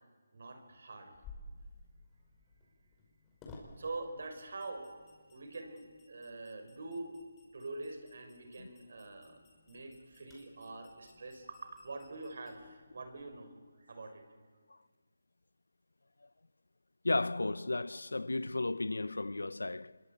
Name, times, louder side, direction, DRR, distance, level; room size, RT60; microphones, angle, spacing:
voice 1, 0.3-1.1 3.8-4.9 5.3-7.1 7.5-9.4 9.7-13.5 13.8-14.2, right 2 dB, 60° right, 5.1 m, -45 dB
sound 1, 1.1-13.4, left 2 dB, 15° left, 5.3 m, -57 dB
voice 2, 17.0-20.0, left 2 dB, 90° left, 0.7 m, -34 dB
26.0 x 22.0 x 8.8 m
figure-of-eight pair, 160°, 0 cm